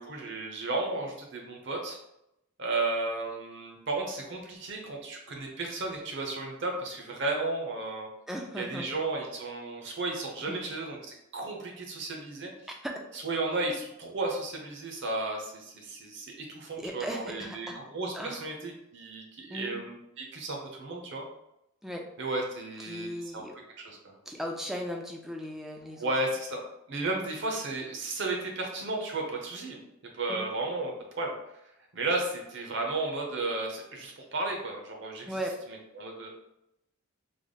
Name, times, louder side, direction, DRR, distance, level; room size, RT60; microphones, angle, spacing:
voice 1, 0.0-2.0 2.6-8.1 8.6-12.5 13.2-21.2 22.2-23.4 23.8-24.1 26.0-26.6 26.9-29.8 30.1-31.3 31.9-35.3 35.9-36.3, right 2 dB, 60° right, 1 dB, 0.8 m, -33 dB
voice 2, 8.3-8.9 10.4-10.6 12.8-12.9 16.8-17.8 18.1-18.4 19.5-19.8 21.8-22.1 22.8-23.6 24.3-26.1 30.3-30.5 35.2-35.6, equal, ahead, 1 dB, 0.3 m, -37 dB
3.4 x 2.0 x 3.8 m, 0.84 s
head